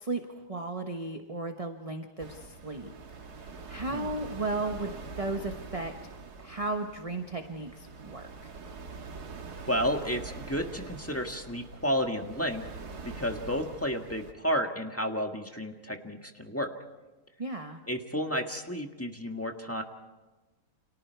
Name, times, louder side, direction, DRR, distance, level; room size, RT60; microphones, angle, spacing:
voice 1, 0.0-5.9 6.4-8.5 17.4-17.8, right 2 dB, 25° right, 5 dB, 1.1 m, -35 dB
sound 1, 2.2-14.3, right 4 dB, 75° right, 2.2 m, -44 dB
voice 2, 9.7-12.6 13.0-16.7 17.9-19.8, equal, 10° left, 4 dB, 1.6 m, -31 dB
29.5 x 27.5 x 4.6 m, 1.2 s
omnidirectional pair, 1.7 m